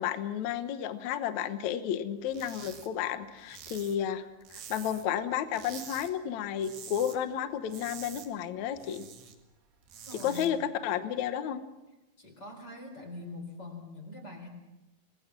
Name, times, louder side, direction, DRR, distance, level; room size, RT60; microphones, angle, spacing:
voice 1, 0.0-9.1 10.2-11.6, left 9 dB, 65° left, 9 dB, 2.0 m, -32 dB
sound 1, 2.3-2.9 3.2-5.2 5.5-6.1 6.4-7.2 7.5-9.3 9.7-10.5, right 8 dB, 85° right, 4.0 m, -47 dB
voice 2, 10.1-10.6 12.2-14.5, left 2 dB, 25° left, 2 dB, 4.6 m, -43 dB
28.0 x 19.5 x 6.1 m, 1.0 s
omnidirectional pair, 4.4 m